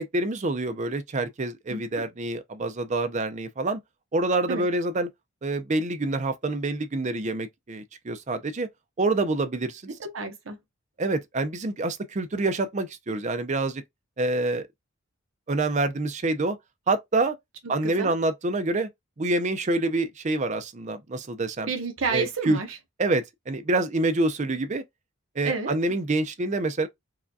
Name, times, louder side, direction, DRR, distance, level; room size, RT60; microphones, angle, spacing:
voice 1, 0.0-3.8 4.1-5.1 5.4-8.7 9.0-10.0 11.0-13.8 14.2-14.7 15.5-16.6 16.9-17.3 17.7-18.9 19.2-21.7 22.1-22.6 23.0-24.8 25.4-26.9, right 2 dB, 35° right, 0.5 m, -26 dB
voice 2, 1.7-2.0 4.5-4.6 9.9-10.6 17.8-18.1 21.7-22.8 25.4-25.7, right 5 dB, 65° right, 0.7 m, -30 dB
4.8 x 2.2 x 2.7 m
head